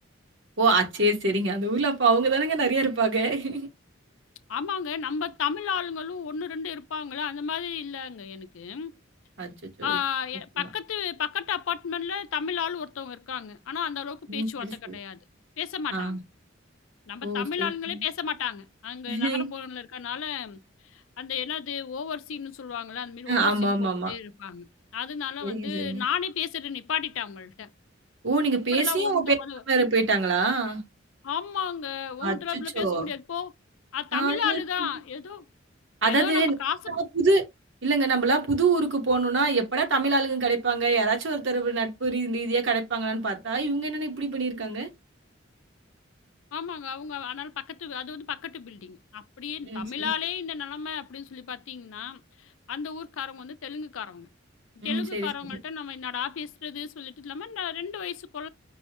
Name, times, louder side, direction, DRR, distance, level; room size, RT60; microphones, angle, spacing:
voice 1, 0.6-3.7 9.4-9.5 9.8-10.0 10.6-10.7 14.3-14.7 15.9-16.2 17.2-18.0 19.1-19.5 23.3-24.1 25.4-26.0 28.2-29.3 29.7-30.8 32.2-33.1 34.1-34.6 36.0-36.5 36.9-37.5 37.8-44.9 49.7-50.1 54.8-55.6, right 3 dB, 65° right, 1.2 m, -25 dB
voice 2, 4.5-9.0 9.8-15.2 15.6-16.2 17.1-20.6 20.9-27.7 28.7-29.6 31.2-33.5 33.9-35.5 36.0-37.0 46.5-54.3 54.8-58.5, left 7 dB, 80° left, 0.4 m, -33 dB
5.3 x 2.1 x 2.9 m
head